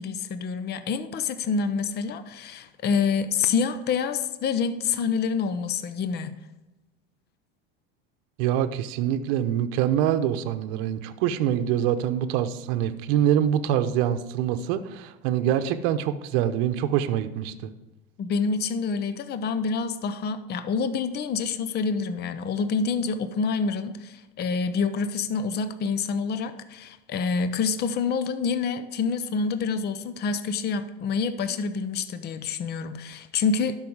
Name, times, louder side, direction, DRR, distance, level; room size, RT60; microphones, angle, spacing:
voice 1, 0.0-6.3 18.2-33.8, left 5 dB, 30° left, 11 dB, 0.7 m, -27 dB
voice 2, 8.4-17.7, right 10 dB, 65° right, 10 dB, 0.9 m, -25 dB
12.0 x 5.6 x 4.8 m, 1.1 s
supercardioid pair, 110°, 32 cm